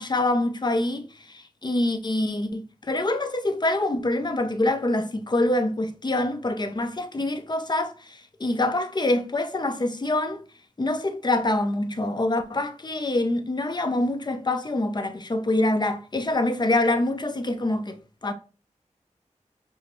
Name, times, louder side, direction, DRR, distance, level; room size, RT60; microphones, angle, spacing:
voice 1, 0.0-10.4 10.8-18.0 18.2-18.3, left 2 dB, 35° left, 0.6 m, -25 dB
5.4 x 2.0 x 3.0 m
cardioid pair, 45°, 13 cm